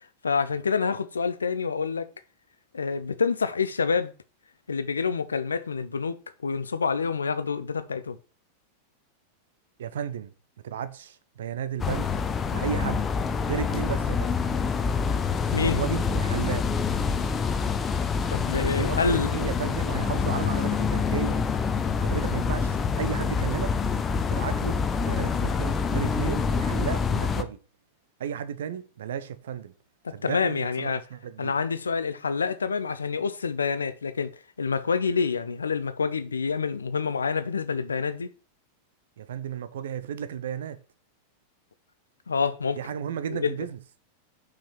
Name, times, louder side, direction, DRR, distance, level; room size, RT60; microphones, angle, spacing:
voice 1, 0.2-2.1 2.7-4.1 4.7-6.2 6.4-8.2 15.5-15.8 18.3-19.3 30.0-31.0 31.4-34.3 34.6-38.3 42.3-42.8 43.3-43.5, left 5 dB, 75° left, 0.7 m, -27 dB
voice 2, 9.8-10.3 10.6-12.1 12.5-14.4 15.5-16.6 18.7-21.4 22.0-23.7 24.3-27.6 28.2-29.7 30.1-31.5 39.2-40.8 42.8-43.8, right 8 dB, 60° right, 0.8 m, -33 dB
sound 1, 11.8-27.4, left 5 dB, 20° left, 0.8 m, -26 dB
5.9 x 5.1 x 5.7 m
figure-of-eight pair, 90°, 0 cm